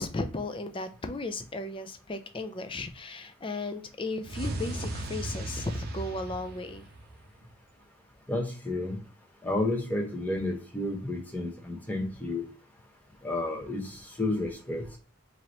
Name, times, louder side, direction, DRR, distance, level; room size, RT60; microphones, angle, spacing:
voice 1, 0.0-6.8, left 2 dB, 25° left, 7 dB, 0.4 m, -35 dB
sound 1, 4.2-7.4, right 1 dB, 45° right, 0.7 m, -36 dB
voice 2, 8.3-9.0 9.4-12.4 13.2-14.8, left 2 dB, 5° left, 0 dB, 0.8 m, -31 dB
4.7 x 2.7 x 2.9 m, 0.38 s
head